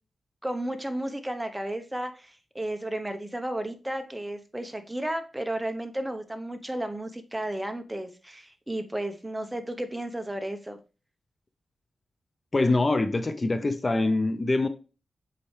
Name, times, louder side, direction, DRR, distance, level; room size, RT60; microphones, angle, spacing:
voice 1, 0.4-10.8, right 1 dB, 10° right, 0.9 m, -33 dB
voice 2, 12.5-14.7, left 2 dB, 30° left, 0.6 m, -24 dB
7.5 x 4.3 x 3.2 m
cardioid pair, 85°, 0 cm